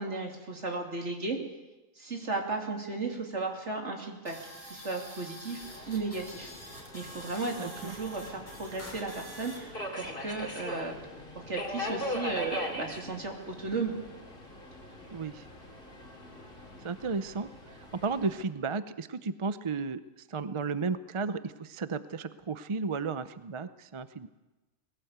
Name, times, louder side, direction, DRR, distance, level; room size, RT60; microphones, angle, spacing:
voice 1, 0.0-1.4 2.0-4.4 4.7-10.9 11.5-13.9, right 3 dB, 55° right, 2 dB, 3.2 m, -35 dB
sound 1, 4.2-9.6, equal, 10° left, 4.5 m, -46 dB
Subway metro underground, 5.6-18.4, left 1 dB, 40° left, 3.2 m, -41 dB
voice 2, 7.6-8.0 15.1-15.5 16.8-24.3, right 4 dB, 35° right, 13 dB, 0.5 m, -34 dB
20.0 x 17.0 x 8.1 m, 1.1 s
omnidirectional pair, 1.5 m